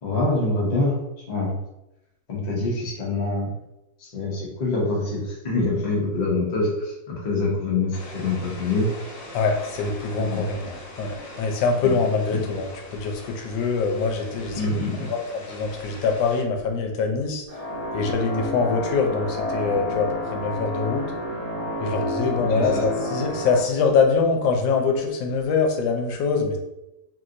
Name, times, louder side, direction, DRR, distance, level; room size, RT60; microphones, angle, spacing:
voice 1, 0.0-1.0 1.3-1.5 2.3-3.5 4.0-8.9 10.2-10.4 11.8-11.9 12.3-12.4 14.5-15.1 22.4-22.8, left 2 dB, 50° left, -4 dB, 0.5 m, -25 dB
sound 1, 7.9-16.4, left 1 dB, 70° left, 1.0 m, -42 dB
voice 2, 9.3-17.4 17.9-21.0 21.8-26.6, left 4 dB, 85° left, 2 dB, 1.3 m, -24 dB
sound 2, 17.5-23.6, left 1 dB, 25° right, 1.0 m, -29 dB
3.1 x 2.8 x 2.5 m, 0.91 s
omnidirectional pair, 2.0 m